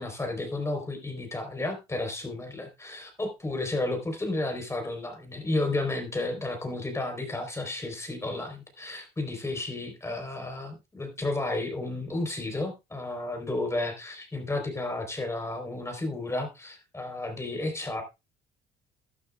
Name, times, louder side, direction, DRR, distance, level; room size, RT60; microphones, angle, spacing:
voice 1, 0.0-18.0, left 2 dB, 15° left, 5 dB, 4.0 m, -32 dB
12.5 x 12.5 x 2.4 m, 0.24 s
cardioid pair, 110°, 17 cm